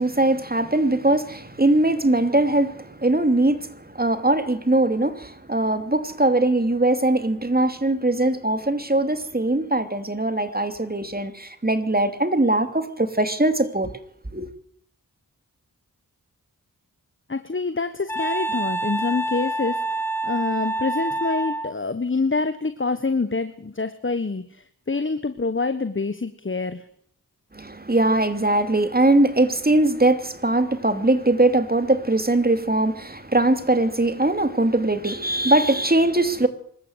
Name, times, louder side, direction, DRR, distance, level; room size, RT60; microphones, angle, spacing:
voice 1, 0.0-13.9 14.3-14.5 27.5-36.5, right 2 dB, 25° right, 2.9 m, -21 dB
voice 2, 17.3-26.8, left 3 dB, 35° left, 1.4 m, -26 dB
Wind instrument woodwind instrument, 18.1-21.7, right 2 dB, 5° left, 1.2 m, -27 dB
24.5 x 14.0 x 8.1 m
cardioid pair, 50°, 36 cm